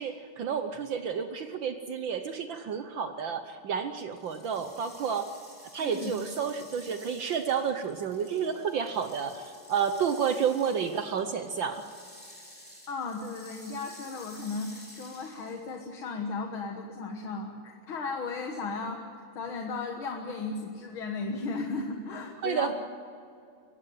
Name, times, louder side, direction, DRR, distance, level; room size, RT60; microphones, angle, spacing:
voice 1, 0.0-5.3 5.7-11.8 22.4-22.7, right 7 dB, 65° right, 8 dB, 1.6 m, -30 dB
sound 1, 4.1-15.7, equal, 5° left, 4.0 m, -52 dB
voice 2, 5.8-6.2 12.9-19.0 19.4-22.7, left 3 dB, 70° left, 2 dB, 2.3 m, -35 dB
22.5 x 16.5 x 9.3 m, 2.4 s
omnidirectional pair, 2.4 m